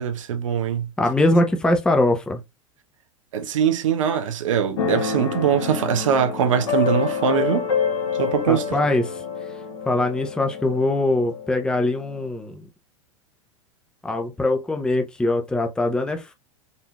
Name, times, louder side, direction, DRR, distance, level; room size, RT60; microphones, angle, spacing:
voice 1, 0.0-0.9 3.3-7.7 8.2-8.8, right 8 dB, 70° right, 0.7 m, -22 dB
voice 2, 1.0-2.4 8.5-9.2 9.9-12.7 14.0-16.3, left 2 dB, 5° left, 0.6 m, -22 dB
Keyboard (musical), 4.8-12.3, left 6 dB, 65° left, 1.1 m, -28 dB
4.1 x 2.7 x 2.3 m
figure-of-eight pair, 85°, 17 cm